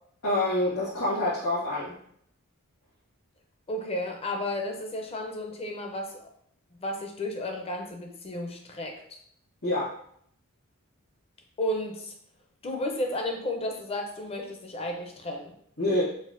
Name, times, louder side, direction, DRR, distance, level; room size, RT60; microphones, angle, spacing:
voice 1, 0.2-1.9 9.6-9.9 15.8-16.0, left 1 dB, 80° left, -11 dB, 1.4 m, -26 dB
voice 2, 3.7-6.3 6.8-9.2 11.6-12.1 12.6-15.5, left 1 dB, 25° left, 2 dB, 0.5 m, -33 dB
4.0 x 2.1 x 2.5 m, 0.66 s
head